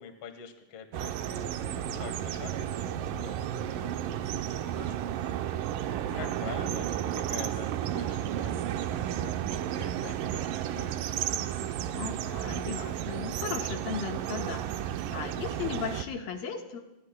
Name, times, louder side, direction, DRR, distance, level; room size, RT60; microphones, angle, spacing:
voice 1, 0.0-1.6 1.9-5.4 5.8-5.9 6.2-10.4 10.8-11.2, left 7 dB, 55° left, 6 dB, 2.0 m, -46 dB
sound 1, 0.9-16.0, right 11 dB, 75° right, 2.2 m, -33 dB
sound 2, 1.1-5.5, left 4 dB, 20° left, 2.4 m, -50 dB
voice 2, 6.1-6.6 11.9-16.8, left 6 dB, 80° left, 2 dB, 3.2 m, -37 dB
29.0 x 20.5 x 2.2 m, 1.0 s
omnidirectional pair, 4.0 m